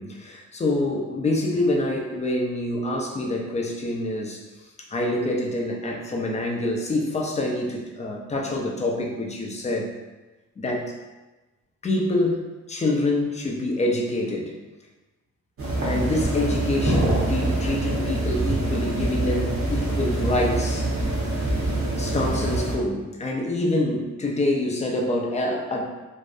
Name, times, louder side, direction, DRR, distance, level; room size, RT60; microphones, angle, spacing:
voice 1, 0.0-4.4 4.8-9.9 10.6-11.0 11.8-14.5 15.8-21.2 22.0-25.8, left 1 dB, 25° left, 0 dB, 0.4 m, -26 dB
sound 1, 15.6-22.8, right 2 dB, 50° right, 0.8 m, -25 dB
2.6 x 2.0 x 2.3 m, 1.1 s
cardioid pair, 90°, 30 cm